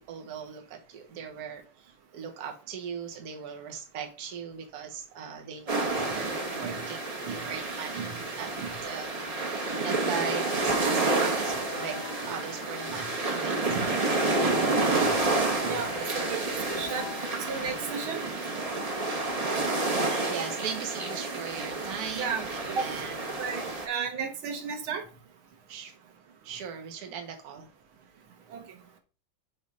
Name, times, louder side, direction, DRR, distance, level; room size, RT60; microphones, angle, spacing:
voice 1, 0.1-7.0 7.3-8.5 8.8-9.1 9.8-14.5 20.3-23.5 25.7-25.9 26.4-27.7, right 7 dB, 55° right, 1.5 m, -39 dB
sound 1, 5.7-23.9, right 2 dB, 35° right, 0.6 m, -29 dB
Keyboard (musical), 11.6-18.1, left 5 dB, 80° left, 2.8 m, -43 dB
voice 2, 15.6-17.1 17.5-18.2 22.1-22.9 23.4-25.1 28.5-28.6, right 6 dB, 80° right, 1.9 m, -34 dB
6.3 x 3.4 x 5.2 m
omnidirectional pair, 2.2 m